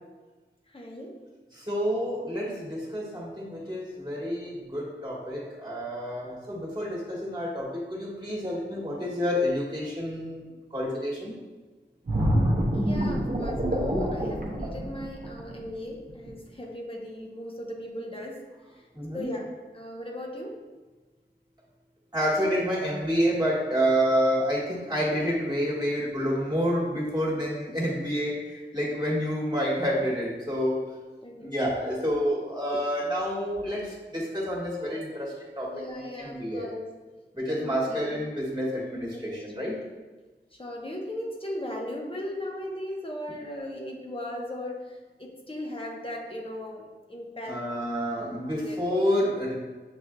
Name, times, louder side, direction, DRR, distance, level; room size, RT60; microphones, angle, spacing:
voice 1, 0.7-1.3 12.7-18.8 19.1-20.6 31.2-31.5 35.7-36.9 37.5-38.2 39.1-39.5 40.5-47.7 48.2-49.0, left 1 dB, 30° left, -1 dB, 0.8 m, -38 dB
voice 2, 1.5-11.3 18.9-19.3 22.1-30.8 31.4-36.7 37.3-39.7 47.5-49.5, equal, 25° right, -5 dB, 1.5 m, -29 dB
sound 1, 12.1-15.6 16.1-16.3, equal, 50° right, 0.7 m, -26 dB
7.2 x 2.6 x 2.3 m, 1.3 s
wide cardioid pair, 45°, 19 cm